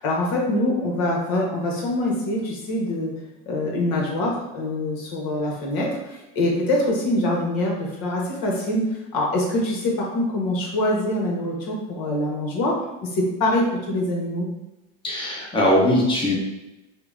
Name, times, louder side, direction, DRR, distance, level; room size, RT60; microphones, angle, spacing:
voice 1, 0.0-3.1 3.5-8.8 9.1-14.5, left 1 dB, 55° left, -2 dB, 1.1 m, -24 dB
voice 2, 15.0-16.3, left 1 dB, 10° left, -3 dB, 0.9 m, -20 dB
4.8 x 2.2 x 2.5 m, 1.0 s
hypercardioid pair, 85°, 40 cm